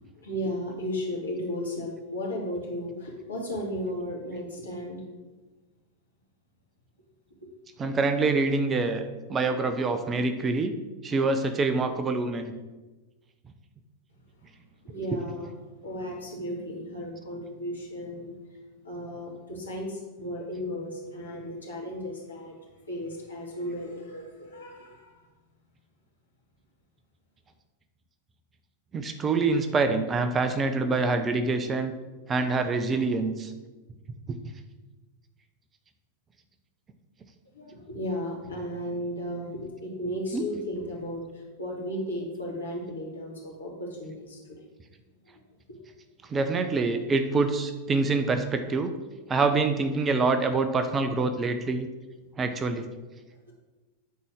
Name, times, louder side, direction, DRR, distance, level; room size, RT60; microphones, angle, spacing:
voice 1, 0.0-5.0 14.8-15.5 15.8-18.3 18.8-22.5 22.9-25.2 37.5-44.4 45.3-45.4 45.7-45.9, equal, 75° left, -2 dB, 2.4 m, -35 dB
voice 2, 7.8-9.0 9.3-10.7 11.0-12.5 28.9-31.9 32.3-33.5 34.3-34.4 40.3-40.4 46.3-48.9 49.3-51.9 52.4-52.9, right 3 dB, 20° right, 8 dB, 0.7 m, -25 dB
9.4 x 4.2 x 6.4 m, 1.2 s
figure-of-eight pair, 90°, 0 cm